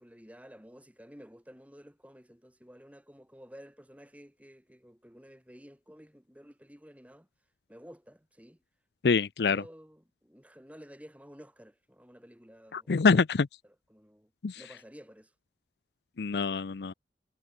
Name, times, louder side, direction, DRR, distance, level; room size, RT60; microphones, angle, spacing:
voice 1, 0.0-7.3 7.7-8.6 9.4-13.2 13.9-15.3, equal, 10° right, 5.5 m, -52 dB
voice 2, 9.0-9.6 12.7-13.5 14.4-14.6 16.2-16.9, left 4 dB, 70° left, 0.5 m, -25 dB
head